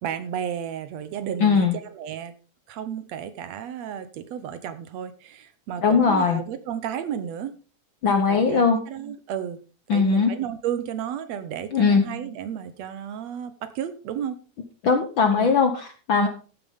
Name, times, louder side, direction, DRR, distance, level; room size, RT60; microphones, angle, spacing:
voice 1, 0.0-2.3 2.7-7.5 8.3-9.6 9.9-14.4 15.3-15.5 16.2-16.3, right 9 dB, 70° right, 11 dB, 1.9 m, -32 dB
voice 2, 1.4-1.8 5.8-6.4 8.0-8.8 9.9-10.3 11.7-12.0 14.8-16.3, left 5 dB, 60° left, 5 dB, 1.3 m, -20 dB
14.0 x 8.8 x 3.6 m, 0.37 s
omnidirectional pair, 3.5 m